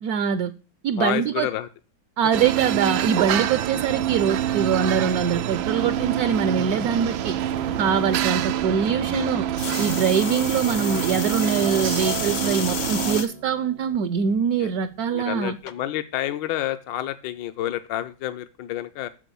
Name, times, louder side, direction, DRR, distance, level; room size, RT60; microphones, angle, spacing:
voice 1, 0.0-0.5 0.8-1.5 2.2-7.3 7.8-9.5 9.8-15.6, right 7 dB, 70° right, 0.9 m, -23 dB
voice 2, 1.0-1.7 7.5-7.8 10.2-10.4 14.6-14.7 15.1-19.1, left 13 dB, 75° left, 1.3 m, -29 dB
sound 1, 2.3-13.2, right 11 dB, 90° right, 1.5 m, -26 dB
sound 2, 9.6-13.3 13.9-14.4 15.7-15.8, left 8 dB, 60° left, 0.8 m, -32 dB
Acoustic guitar, 12.0-17.2, right 4 dB, 45° right, 0.6 m, -43 dB
9.0 x 6.7 x 6.9 m
omnidirectional pair, 2.1 m